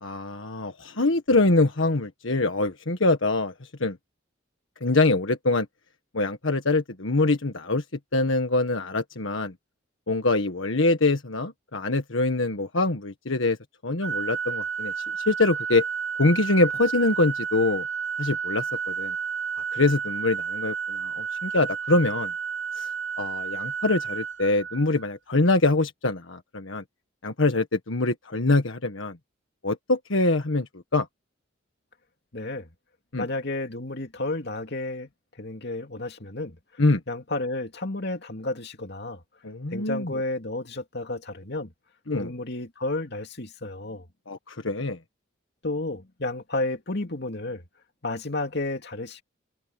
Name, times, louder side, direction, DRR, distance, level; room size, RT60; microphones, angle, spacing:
voice 1, 0.0-4.0 4.8-5.7 6.1-7.8 8.1-9.5 10.1-13.6 13.8-14.9 15.3-15.8 16.2-17.8 18.2-19.1 19.7-22.3 22.7-22.9 23.2-26.8 27.2-29.2 29.6-31.1 33.1-33.2 36.8-37.0 39.4-40.1 42.1-42.3 44.3-45.0, left 2 dB, 75° left, 1.6 m, -24 dB
Organ, 14.0-25.1, right 6 dB, 75° right, 6.7 m, -31 dB
voice 2, 32.3-32.7 33.2-35.1 35.4-36.6 37.1-39.2 39.7-41.7 42.1-44.1 45.6-47.6 48.0-49.2, left 2 dB, 55° left, 2.5 m, -31 dB
head